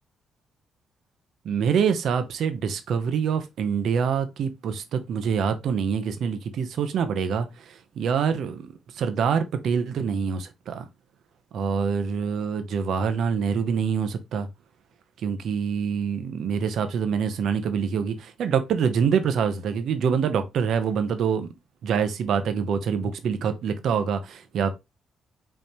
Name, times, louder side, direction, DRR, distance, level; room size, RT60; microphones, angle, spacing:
voice 1, 1.4-10.8 11.5-14.5 15.2-21.5 21.8-24.7, right 6 dB, 70° right, 0.9 m, -25 dB
5.5 x 3.2 x 2.9 m
cardioid pair, 90°, 0 cm